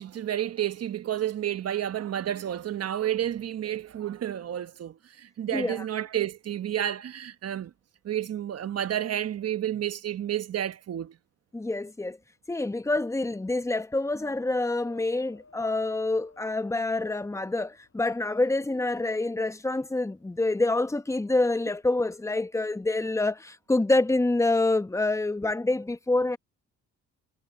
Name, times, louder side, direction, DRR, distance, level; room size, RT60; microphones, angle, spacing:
voice 1, 0.0-7.7 8.0-11.1, right 11 dB, 55° right, 1.1 m, -30 dB
voice 2, 5.5-5.9 11.5-12.2 12.5-26.4, left 2 dB, 10° left, 0.9 m, -27 dB
Wind, 14.0-17.5 18.1-19.1 19.9-20.0, left 3 dB, 45° left, 3.6 m, -56 dB
cardioid pair, 90°, 30 cm